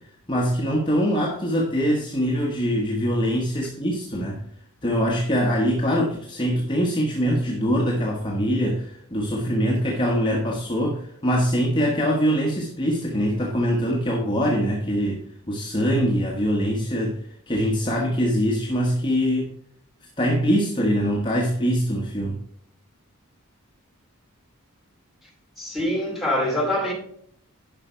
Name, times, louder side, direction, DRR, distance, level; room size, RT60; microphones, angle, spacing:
voice 1, 0.3-4.4 4.8-19.5 20.2-22.4, equal, 20° left, 1.3 m, -23 dB
voice 2, 25.6-26.9, left 1 dB, ahead, 2.7 m, -24 dB
10.5 x 5.8 x 4.4 m
head